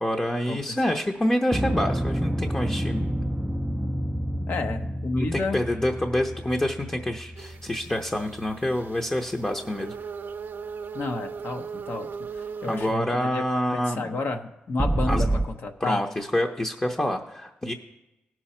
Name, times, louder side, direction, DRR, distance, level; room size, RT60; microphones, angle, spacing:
voice 1, 0.0-3.1 5.1-9.9 12.7-14.2 15.1-15.3 15.8-17.7, left 1 dB, 20° left, 2 dB, 0.8 m, -27 dB
sound 1, 1.5-9.9 14.8-15.5, right 1 dB, 5° right, 0.5 m, -29 dB
voice 2, 4.5-5.6 10.9-12.1 12.3-13.4 13.7-16.0, left 3 dB, 65° left, 4 dB, 1.0 m, -31 dB
sound 2, 7.4-12.9, right 6 dB, 60° right, 0.6 m, -38 dB
17.5 x 6.2 x 4.3 m, 0.97 s
cardioid pair, 75°, 4 cm